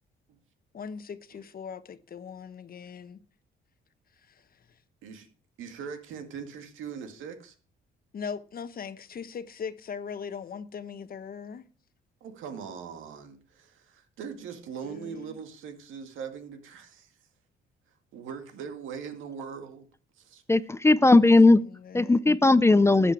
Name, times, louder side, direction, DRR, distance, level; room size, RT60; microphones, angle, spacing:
voice 1, 0.7-3.2 4.2-4.8 8.1-11.6 14.8-15.4 21.0-21.4 21.6-22.2, left 6 dB, 50° left, 1.0 m, -40 dB
voice 2, 5.6-7.5 12.2-17.1 18.1-19.9 20.2-20.4, right 6 dB, 85° right, 2.2 m, -40 dB
voice 3, 20.5-21.6 21.9-23.1, left 2 dB, 15° left, 0.5 m, -18 dB
13.5 x 8.8 x 4.8 m
cardioid pair, 90°, 20 cm